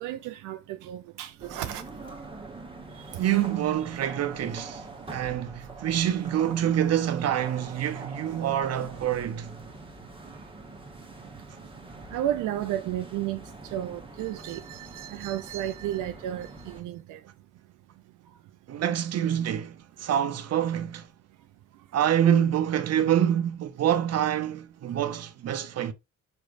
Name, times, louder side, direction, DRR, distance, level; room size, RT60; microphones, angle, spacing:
voice 1, 0.0-1.8 12.1-13.4 13.7-17.2, right 12 dB, 85° right, 0.5 m, -32 dB
sound 1, 1.4-16.8, right 2 dB, 15° right, 1.1 m, -44 dB
voice 2, 3.2-9.6 18.7-21.1 21.9-25.9, right 10 dB, 55° right, 0.7 m, -26 dB
5.1 x 3.3 x 2.5 m
cardioid pair, 90°, 30 cm